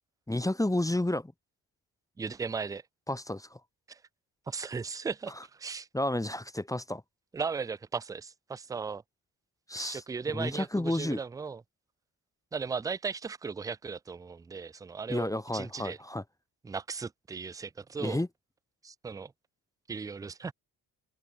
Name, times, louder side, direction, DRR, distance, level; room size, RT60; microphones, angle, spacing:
voice 1, 0.3-1.3 3.1-3.6 5.9-7.0 9.7-10.0 10.3-11.2 15.1-16.2 18.0-18.3, left 1 dB, 5° left, 0.9 m, -31 dB
voice 2, 2.2-2.8 3.9-4.0 4.5-5.9 7.3-9.0 9.8-11.6 12.5-16.0 16.6-18.2 18.8-19.3 19.9-20.5, right 5 dB, 10° right, 0.3 m, -37 dB
open air
hypercardioid pair, 45°, 48 cm